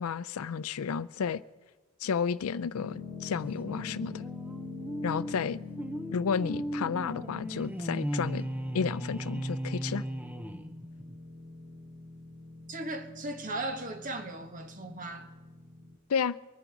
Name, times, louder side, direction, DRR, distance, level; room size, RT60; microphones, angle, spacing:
voice 1, 0.0-1.4 2.0-4.2 5.0-5.6 6.1-8.5 8.7-10.0 16.1-16.4, left 6 dB, 85° left, 0.4 m, -32 dB
sound 1, 2.7-16.0, left 4 dB, 60° right, 4.7 m, -45 dB
sound 2, 3.6-11.1, right 1 dB, 5° right, 0.5 m, -37 dB
voice 2, 12.7-15.3, right 2 dB, 35° right, 1.4 m, -37 dB
24.0 x 10.0 x 4.8 m
head